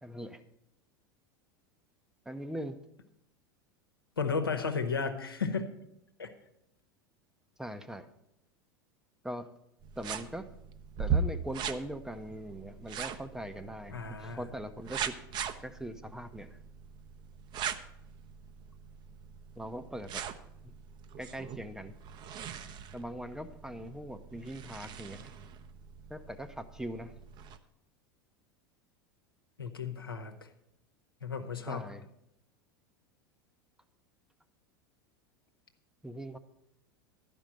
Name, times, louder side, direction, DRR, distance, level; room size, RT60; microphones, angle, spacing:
voice 1, 0.0-0.4 2.3-2.8 7.6-8.1 9.2-9.5 10.0-10.5 11.0-15.1 15.6-16.6 19.6-20.2 20.6-20.7 21.2-22.0 22.9-25.3 26.1-27.2 31.7-32.1 36.0-36.4, right 1 dB, 5° right, 9 dB, 0.7 m, -41 dB
voice 2, 4.2-5.8 6.2-6.3 13.9-14.4 29.6-30.5 31.2-31.8, left 5 dB, 85° left, 5 dB, 1.0 m, -34 dB
sound 1, 9.8-27.6, right 6 dB, 40° right, 0.7 m, -40 dB
11.5 x 5.3 x 7.4 m, 0.80 s
figure-of-eight pair, 85°, 12 cm